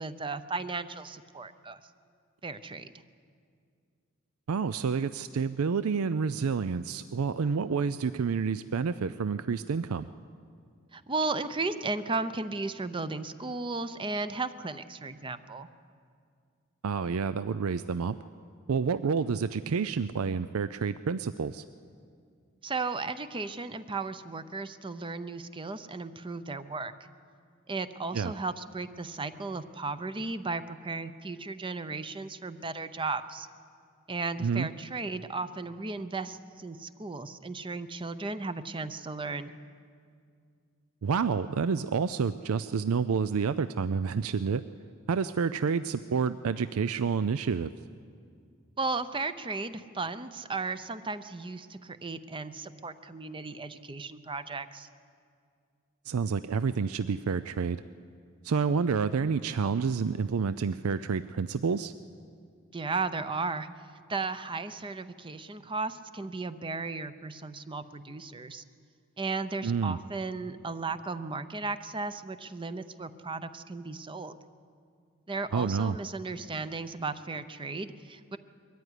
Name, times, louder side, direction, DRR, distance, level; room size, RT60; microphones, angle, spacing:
voice 1, 0.0-1.8 2.4-2.9 10.9-15.7 22.6-26.9 27.7-33.5 34.1-39.5 48.8-54.9 62.7-63.7 64.1-68.6 69.2-74.3 75.3-78.4, right 3 dB, 25° right, 12 dB, 0.7 m, -35 dB
voice 2, 4.5-10.1 16.8-18.2 18.7-21.6 28.1-28.3 34.4-34.7 41.0-44.6 45.1-47.7 56.0-57.8 58.4-61.9 69.6-70.0 75.5-76.0, right 5 dB, 80° right, 13 dB, 0.5 m, -29 dB
22.0 x 14.0 x 9.8 m, 2.3 s
head